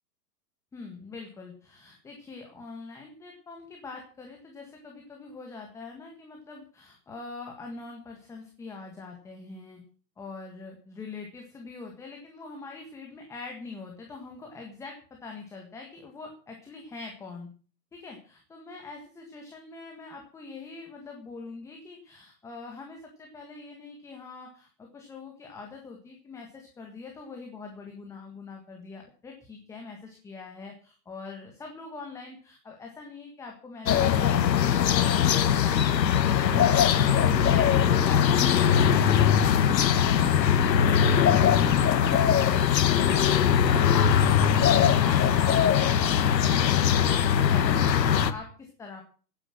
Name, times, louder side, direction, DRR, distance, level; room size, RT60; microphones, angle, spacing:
voice 1, 0.7-9.8 10.2-17.5 17.9-39.4 39.7-49.0, left 4 dB, 5° left, 1 dB, 1.6 m, -43 dB
sound 1, 33.9-48.3, left 8 dB, 80° left, 1.6 m, -21 dB
16.5 x 9.8 x 6.0 m, 0.41 s
hypercardioid pair, 165°, 50 cm